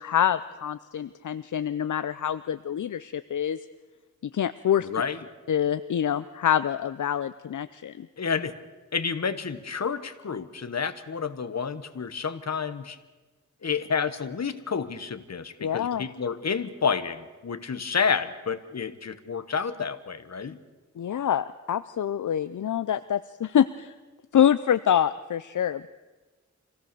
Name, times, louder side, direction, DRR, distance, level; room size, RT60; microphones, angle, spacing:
voice 1, 0.0-3.6 4.3-4.9 5.5-8.1 15.6-16.1 21.0-23.9 24.3-25.9, left 9 dB, 80° left, 13 dB, 0.6 m, -26 dB
voice 2, 4.8-5.2 8.2-8.5 8.9-13.0 13.6-20.6, left 6 dB, 60° left, 12 dB, 1.2 m, -29 dB
25.5 x 17.0 x 6.8 m, 1.2 s
wide cardioid pair, 95°, 30 cm